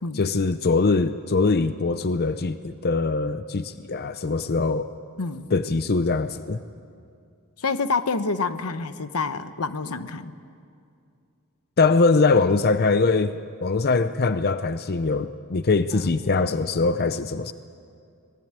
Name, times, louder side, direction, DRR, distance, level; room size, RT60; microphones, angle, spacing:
voice 1, 0.1-4.9 5.5-6.6 11.8-17.5, left 3 dB, 45° left, 11 dB, 0.6 m, -22 dB
voice 2, 7.6-10.3 15.9-16.1, left 4 dB, 80° left, 11 dB, 1.0 m, -28 dB
25.5 x 19.5 x 9.0 m, 2.4 s
head